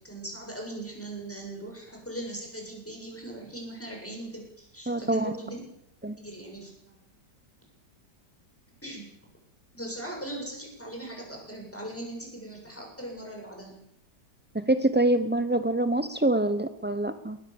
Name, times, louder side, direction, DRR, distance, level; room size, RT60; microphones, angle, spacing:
voice 1, 0.0-5.6 6.2-7.1 8.8-9.1 9.7-13.8, right 1 dB, 5° left, 0 dB, 7.4 m, -39 dB
voice 2, 4.9-5.3 6.0-6.2 14.5-17.4, right 1 dB, 15° right, 11 dB, 0.3 m, -25 dB
22.0 x 19.0 x 7.1 m, 0.76 s
omnidirectional pair, 1.9 m